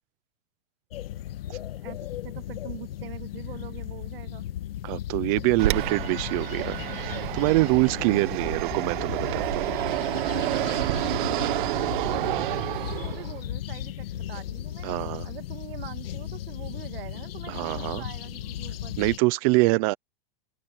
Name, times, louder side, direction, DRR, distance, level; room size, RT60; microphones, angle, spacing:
sound 1, 0.9-19.2, left 12 dB, 80° left, 1.8 m, -36 dB
voice 1, 1.5-4.4 9.9-14.9 15.2-19.0 19.7-19.9, right 13 dB, 75° right, 2.2 m, -43 dB
voice 2, 4.8-9.7 14.8-15.3 17.5-18.0 19.0-19.9, right 23 dB, 35° right, 0.8 m, -25 dB
Fixed-wing aircraft airplane, 5.6-13.4, right 16 dB, 60° right, 1.6 m, -29 dB
supercardioid pair, 165°, 29 cm